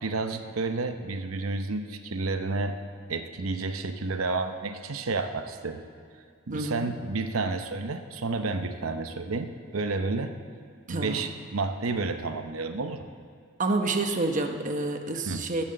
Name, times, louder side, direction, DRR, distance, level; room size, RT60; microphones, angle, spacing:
voice 1, 0.0-2.8 3.1-5.8 6.5-10.4 10.9-13.1 15.3-15.4, right 3 dB, 90° right, 8 dB, 0.8 m, -30 dB
voice 2, 6.5-6.9 10.9-11.3 13.6-15.6, right 2 dB, 40° right, 5 dB, 1.0 m, -28 dB
12.5 x 11.5 x 7.7 m, 2.2 s
head